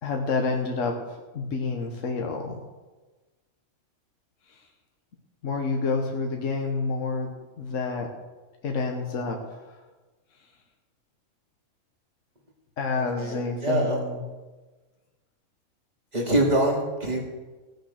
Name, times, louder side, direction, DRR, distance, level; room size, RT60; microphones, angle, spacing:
voice 1, 0.0-2.6 4.5-4.6 5.4-8.1 8.6-9.4 12.8-14.2, left 4 dB, 70° left, 2 dB, 1.5 m, -28 dB
voice 2, 13.2-14.0 16.1-17.2, right 1 dB, 30° right, -1 dB, 2.5 m, -24 dB
17.0 x 6.7 x 6.5 m, 1.2 s
omnidirectional pair, 1.4 m